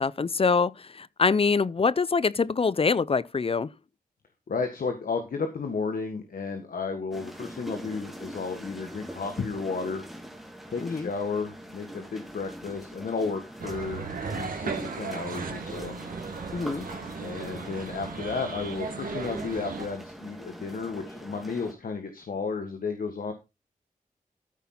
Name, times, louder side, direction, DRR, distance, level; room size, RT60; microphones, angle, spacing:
voice 1, 0.0-3.7 10.8-11.1 16.5-16.9, left 4 dB, 40° left, 0.6 m, -25 dB
voice 2, 4.5-10.0 10.7-14.1 14.4-16.0 17.2-23.3, left 4 dB, 75° left, 1.6 m, -33 dB
sound 1, 7.1-21.7, equal, ahead, 2.5 m, -43 dB
sound 2, 13.6-19.9, right 4 dB, 80° right, 2.4 m, -36 dB
14.0 x 5.4 x 4.3 m
cardioid pair, 65°, 15 cm